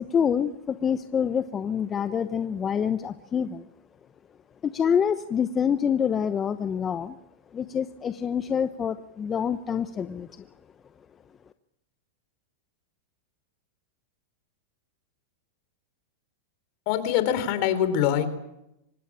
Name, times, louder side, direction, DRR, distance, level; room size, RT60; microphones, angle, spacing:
voice 1, 0.0-3.6 4.6-7.2 7.5-10.5, left 7 dB, 25° left, 11 dB, 0.9 m, -26 dB
voice 2, 16.9-18.3, left 10 dB, 55° left, 12 dB, 3.8 m, -24 dB
25.0 x 19.5 x 8.7 m, 0.86 s
hypercardioid pair, 115°, 0 cm